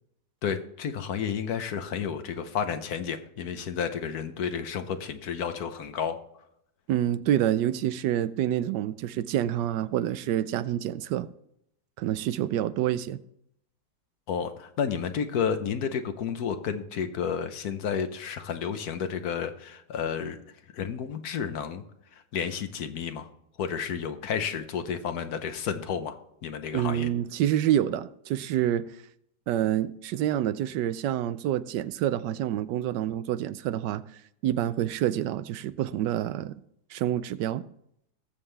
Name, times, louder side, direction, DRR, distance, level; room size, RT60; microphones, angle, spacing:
voice 1, 0.4-6.2 14.3-20.4 20.7-21.8 22.1-23.3 23.6-26.2 26.4-27.1, left 7 dB, 65° left, 1.3 m, -31 dB
voice 2, 6.9-11.3 12.0-13.2 26.7-28.9 29.5-34.0 34.4-36.5 36.9-37.6, right 11 dB, 85° right, 1.2 m, -27 dB
19.0 x 7.4 x 3.3 m
omnidirectional pair, 1.8 m